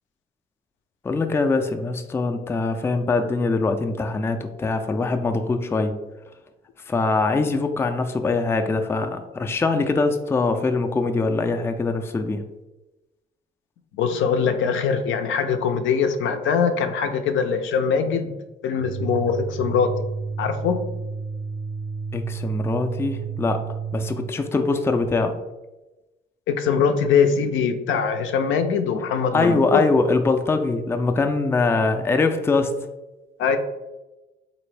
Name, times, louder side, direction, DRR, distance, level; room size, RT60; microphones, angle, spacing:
voice 1, 1.0-6.0 6.9-12.4 22.1-25.4 29.3-32.7, left 3 dB, 10° left, 6 dB, 0.3 m, -23 dB
voice 2, 13.9-18.3 18.6-19.9 20.4-20.8 26.5-29.8 33.4-33.6, left 6 dB, 80° left, 7 dB, 0.5 m, -22 dB
sound 1, 18.8-24.4, right 6 dB, 75° right, 0.6 m, -31 dB
3.8 x 2.6 x 3.2 m, 1.1 s
cardioid pair, 90°, 20 cm